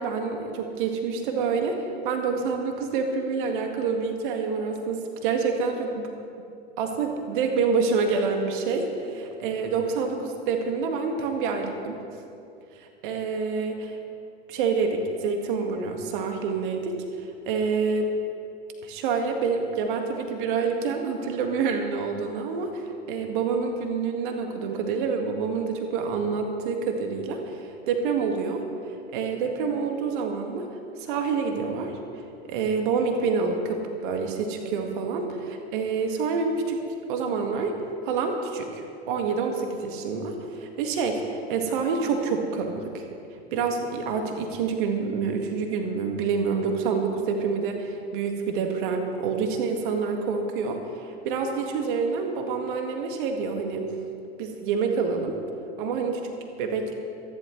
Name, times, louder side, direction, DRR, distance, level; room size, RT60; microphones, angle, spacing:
voice 1, 0.0-6.1 6.8-12.0 12.8-14.0 14.5-18.1 18.8-28.6 29.1-30.7 31.0-32.0 32.5-36.8 37.1-37.8 38.1-43.1 43.5-53.9 54.4-55.4 55.8-56.9, right 5 dB, 55° right, 4 dB, 1.8 m, -27 dB
26.0 x 11.0 x 3.2 m, 2.6 s
figure-of-eight pair, 90°, 31 cm